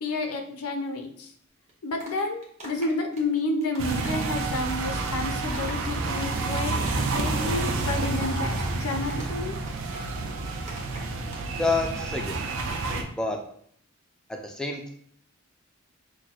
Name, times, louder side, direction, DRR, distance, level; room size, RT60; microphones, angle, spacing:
voice 1, 0.0-1.3 1.8-6.7 7.1-9.5, left 2 dB, 80° left, 4 dB, 0.5 m, -30 dB
sound 1, 1.7-4.6 4.9-5.1 5.4-11.4 11.7-11.9, right 1 dB, 30° right, 0.9 m, -44 dB
sound 2, 3.8-13.0, right 3 dB, 60° right, 0.5 m, -29 dB
voice 2, 11.6-12.7 13.1-13.4 14.3-14.9, left 3 dB, 5° left, 2 dB, 0.3 m, -29 dB
5.9 x 2.1 x 2.3 m, 0.63 s
head